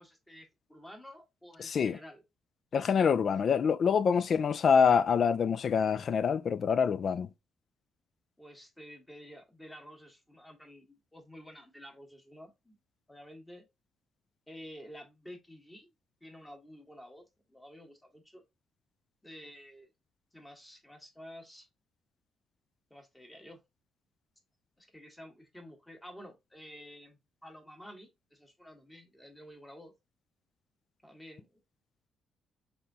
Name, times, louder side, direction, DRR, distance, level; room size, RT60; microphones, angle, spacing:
voice 1, 0.0-2.2 3.3-3.4 8.4-12.8 13.1-13.7 14.5-15.9 16.2-18.4 19.2-19.9 20.3-21.7 22.9-23.6 24.8-29.9 31.0-31.6, equal, 10° left, 1.4 m, -51 dB
voice 2, 1.6-2.0 2.7-7.3, left 6 dB, 55° left, 0.3 m, -26 dB
4.1 x 3.4 x 2.7 m
cardioid pair, 90°, 0 cm